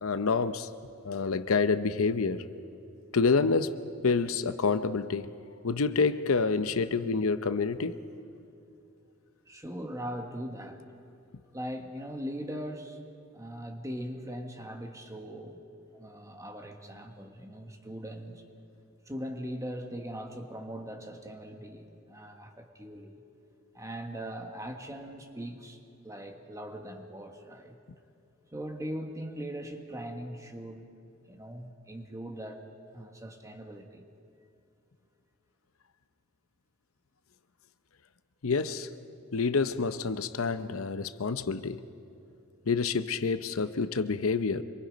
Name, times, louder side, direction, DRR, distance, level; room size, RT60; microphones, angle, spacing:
voice 1, 0.0-0.7 1.0-2.4 3.1-5.3 5.6-8.0 38.4-38.9 39.3-41.8 42.7-44.6, left 4 dB, 75° left, 0.7 m, -28 dB
voice 2, 9.5-10.8 11.5-13.0 13.3-15.6 15.9-18.4 19.0-23.2 23.7-27.8 28.5-30.9 31.3-32.6 32.9-34.0, equal, 15° right, 1.5 m, -40 dB
26.0 x 23.0 x 5.3 m
head